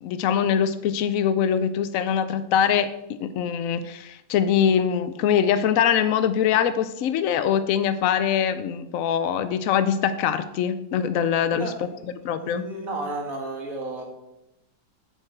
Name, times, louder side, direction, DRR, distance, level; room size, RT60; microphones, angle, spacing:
voice 1, 0.0-2.9 3.2-11.7 12.2-12.6, left 8 dB, 85° left, 11 dB, 0.7 m, -23 dB
voice 2, 11.5-14.0, right 2 dB, 50° right, 1 dB, 2.0 m, -33 dB
8.5 x 8.0 x 4.4 m, 0.86 s
omnidirectional pair, 2.0 m